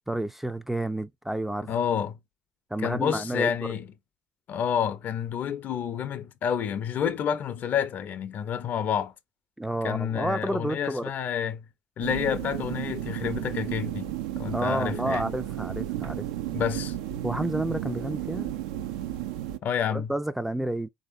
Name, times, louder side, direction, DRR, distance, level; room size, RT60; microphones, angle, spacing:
voice 1, 0.1-1.7 2.7-3.5 9.6-11.1 14.5-16.3 17.2-18.5 19.9-20.9, right 1 dB, 5° right, 0.3 m, -30 dB
voice 2, 1.7-2.2 2.8-3.9 4.5-9.1 9.8-11.7 12.0-15.2 16.5-16.9 19.6-20.1, left 8 dB, 50° left, 0.5 m, -29 dB
sound 1, 12.0-19.6, right 13 dB, 80° right, 0.4 m, -33 dB
3.4 x 2.7 x 2.5 m
hypercardioid pair, 70°, 4 cm